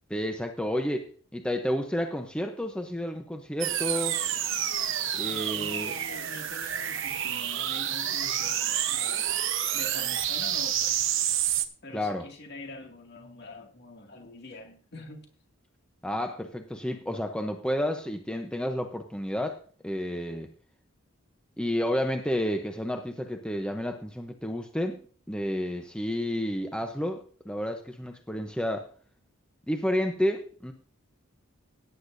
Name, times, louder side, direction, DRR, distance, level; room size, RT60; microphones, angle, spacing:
voice 1, 0.1-4.2 5.1-5.9 11.9-12.3 16.0-20.5 21.6-25.0 25.3-28.9 29.7-30.7, equal, 5° left, 4 dB, 0.7 m, -31 dB
sound 1, 3.6-11.6, right 10 dB, 65° right, 1.0 m, -29 dB
voice 2, 5.3-9.5 9.7-11.0 11.8-15.3, left 2 dB, 50° left, 2 dB, 2.2 m, -44 dB
17.0 x 9.8 x 2.7 m, 0.43 s
head